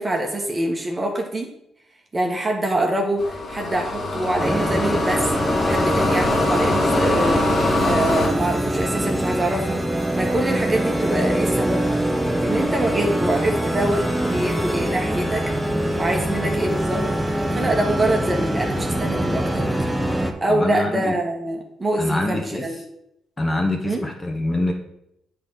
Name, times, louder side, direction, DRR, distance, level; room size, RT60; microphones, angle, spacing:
voice 1, 0.0-1.5 2.1-9.8 10.1-11.8 12.4-15.5 16.0-17.1 17.3-19.9 20.2-22.8 23.8-24.0, right 1 dB, 25° right, 1 dB, 1.4 m, -25 dB
sound 1, 3.2-8.3, left 2 dB, 45° left, 2.1 m, -23 dB
sound 2, 4.4-20.3, right 1 dB, 5° right, 1.0 m, -23 dB
voice 2, 20.5-21.1 22.0-22.7 23.4-24.7, left 1 dB, 25° left, 1 dB, 1.8 m, -24 dB
8.1 x 3.8 x 6.3 m, 0.78 s
cardioid pair, 90°, 0 cm